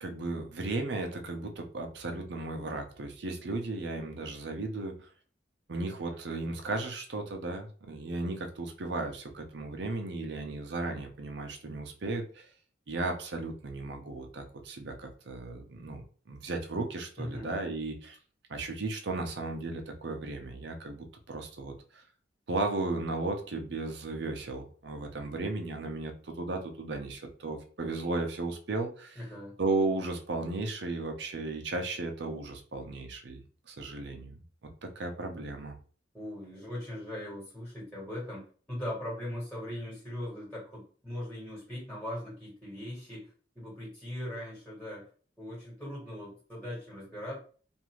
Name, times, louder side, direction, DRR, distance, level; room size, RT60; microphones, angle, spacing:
voice 1, 0.0-4.9 5.7-12.5 12.9-18.2 18.5-22.0 22.5-29.2 29.6-34.4 34.8-35.8, right 2 dB, 70° right, 4 dB, 0.6 m, -35 dB
voice 2, 17.2-17.5 29.1-29.5 36.1-38.4 38.7-45.1 45.4-47.4, left 1 dB, 5° left, -7 dB, 1.4 m, -40 dB
2.6 x 2.4 x 3.0 m, 0.41 s
head